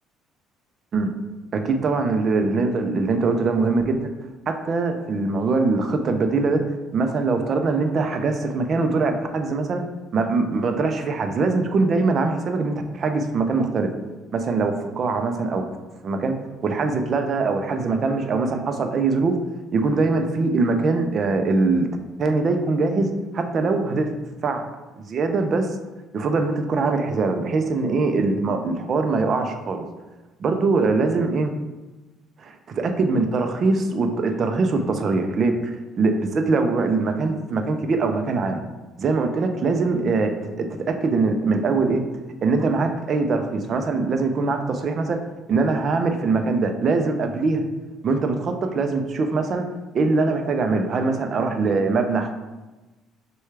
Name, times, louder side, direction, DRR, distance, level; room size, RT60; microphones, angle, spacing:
voice 1, 1.5-4.1 4.5-6.6 6.9-9.8 10.1-13.9 14.3-15.7 16.0-16.3 16.6-19.3 19.7-21.9 22.2-24.6 25.0-25.8 26.1-29.8 30.4-31.5 32.4-38.6 39.0-42.0 42.4-45.2 45.5-47.6 48.0-49.7 49.9-52.3, right 3 dB, 45° right, 5 dB, 0.5 m, -22 dB
6.4 x 2.3 x 3.3 m, 1.1 s
cardioid pair, 115°, 0 cm